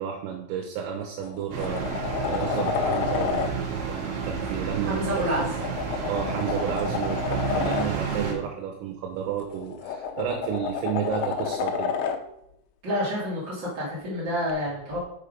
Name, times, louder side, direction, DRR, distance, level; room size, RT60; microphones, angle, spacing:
voice 1, 0.0-5.0 5.4-5.5 6.1-12.4, right 8 dB, 85° right, 1 dB, 3.5 m, -32 dB
sound 1, 0.6-0.8 1.2-3.5 5.2-7.9 9.4-12.2 14.5-14.6, left 7 dB, 80° left, 2.8 m, -30 dB
sound 2, 1.5-8.3, right 5 dB, 65° right, 2.6 m, -31 dB
voice 2, 4.9-5.5 12.8-15.0, equal, 30° right, -8 dB, 2.2 m, -28 dB
6.6 x 5.8 x 5.1 m, 0.74 s
omnidirectional pair, 5.8 m